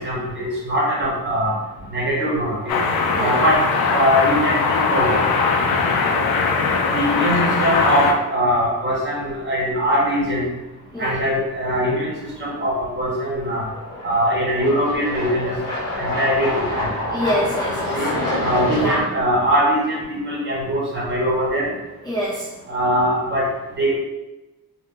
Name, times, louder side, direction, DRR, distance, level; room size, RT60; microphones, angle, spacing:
voice 1, 0.0-1.5 1.9-2.7 3.2-3.6 3.9-5.2 6.9-10.4 11.0-12.1 12.4-13.6 14.0-15.5 15.9-16.5 17.9-18.1 18.4-21.7 22.7-23.4 23.8-24.0, equal, 30° right, -6 dB, 1.1 m, -21 dB
sound 1, 1.2-1.7 2.1-2.2 5.0-5.1 6.5-6.7 7.0-7.1 12.5-12.6 13.3-19.0, left 1 dB, 55° left, 0.9 m, -27 dB
sound 2, 2.7-8.1, left 4 dB, 75° left, 0.5 m, -20 dB
voice 2, 17.1-18.1 18.7-19.1 22.0-22.5, equal, 10° left, -8 dB, 0.4 m, -26 dB
2.4 x 2.3 x 3.7 m, 1.1 s
wide cardioid pair, 165°, 37 cm